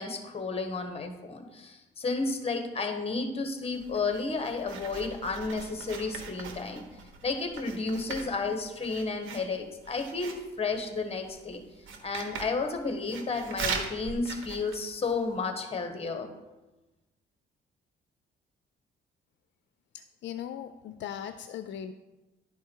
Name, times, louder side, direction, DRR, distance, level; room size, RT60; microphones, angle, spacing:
voice 1, 0.0-6.8 7.2-11.6 12.0-16.3, left 3 dB, 30° left, 6 dB, 1.3 m, -32 dB
Writing, 3.7-15.4, right 5 dB, 85° right, 1.1 m, -41 dB
voice 2, 19.9-21.9, left 9 dB, 65° left, 10 dB, 0.4 m, -39 dB
10.5 x 4.7 x 4.6 m, 1.1 s
cardioid pair, 90°, 20 cm